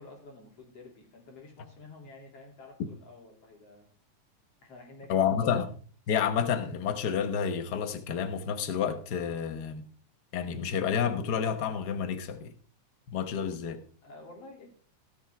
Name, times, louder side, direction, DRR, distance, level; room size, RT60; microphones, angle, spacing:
voice 1, 0.0-3.9 4.6-5.3 14.0-14.7, left 2 dB, 55° left, 3.7 m, -50 dB
voice 2, 5.1-5.7 6.1-9.9 10.3-12.5 13.1-13.8, left 7 dB, 75° left, 0.9 m, -29 dB
18.0 x 7.3 x 3.4 m
omnidirectional pair, 3.4 m